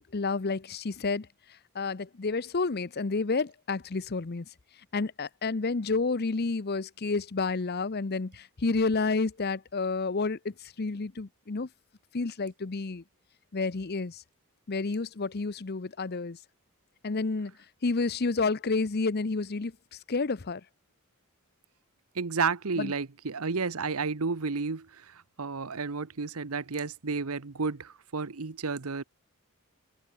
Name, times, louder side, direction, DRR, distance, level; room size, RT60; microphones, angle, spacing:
voice 1, 0.1-1.3 1.7-4.5 4.9-11.7 12.1-13.0 13.5-14.2 14.7-16.4 17.0-17.5 17.8-19.7 20.1-20.6 22.8-22.9, left 3 dB, 45° left, 0.7 m, -30 dB
voice 2, 22.1-24.9 25.4-29.0, right 4 dB, 75° right, 1.0 m, -31 dB
head